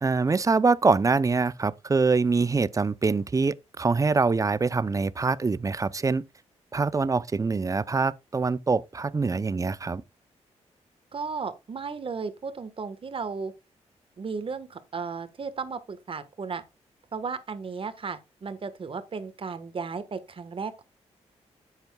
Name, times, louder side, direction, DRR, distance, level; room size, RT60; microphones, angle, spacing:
voice 1, 0.0-6.2 6.7-10.0, right 4 dB, 30° right, 0.5 m, -24 dB
voice 2, 11.1-13.5 14.2-16.6 17.1-20.8, right 5 dB, 50° right, 1.3 m, -35 dB
10.5 x 8.0 x 2.3 m
cardioid pair, 85°, 12 cm